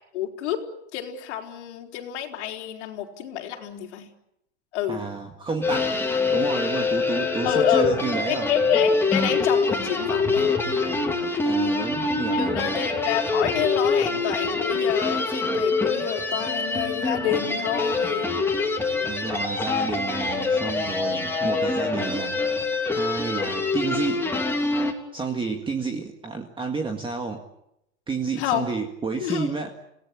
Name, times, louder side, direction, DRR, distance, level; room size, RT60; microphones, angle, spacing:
voice 1, 0.1-0.7 0.9-4.1 4.7-5.1 7.4-7.9 8.3-10.4 12.3-18.3 28.4-28.7 29.2-29.6, left 10 dB, 85° left, 1 dB, 4.4 m, -28 dB
voice 2, 4.9-6.0 6.3-8.5 11.4-12.8 19.0-22.4 22.9-24.3 25.1-27.4 28.1-29.7, right 4 dB, 15° right, 4 dB, 1.9 m, -30 dB
sound 1, 5.6-24.9, left 3 dB, 5° left, 3.1 m, -25 dB
28.0 x 18.0 x 10.0 m, 0.83 s
supercardioid pair, 145°, 34 cm